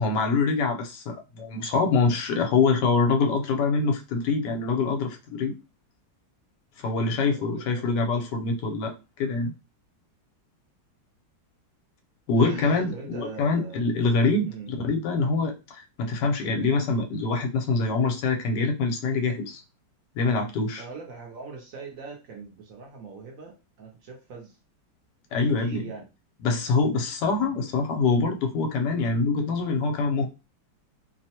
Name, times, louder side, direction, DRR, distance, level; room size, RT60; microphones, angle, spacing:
voice 1, 0.0-5.5 6.8-9.5 12.3-19.6 20.2-20.8 25.3-25.8 26.4-30.3, left 4 dB, 70° left, 1.2 m, -25 dB
voice 2, 7.3-8.1 12.4-13.8 14.5-14.7 20.8-24.6 25.3-26.1, right 3 dB, 65° right, 0.9 m, -41 dB
3.0 x 2.1 x 2.8 m
omnidirectional pair, 2.0 m